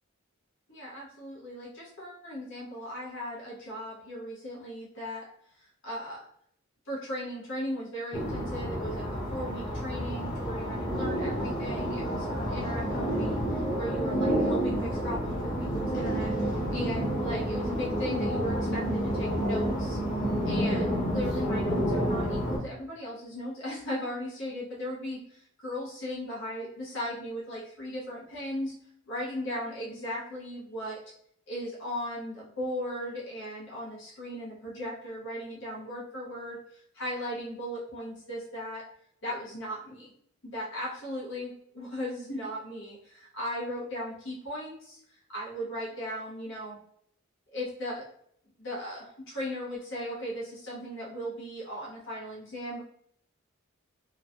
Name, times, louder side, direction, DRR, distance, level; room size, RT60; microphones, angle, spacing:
voice 1, 0.7-5.3 5.6-6.2 6.9-13.4 13.8-20.0 20.4-28.7 29.1-31.0 31.5-38.8 39.2-40.1 40.4-45.0 45.3-46.8 47.5-48.0 48.6-52.8, equal, 55° left, -5 dB, 1.0 m, -37 dB
sound 1, 8.1-22.6, equal, 35° left, 0.7 m, -29 dB
3.1 x 2.2 x 2.6 m, 0.67 s
head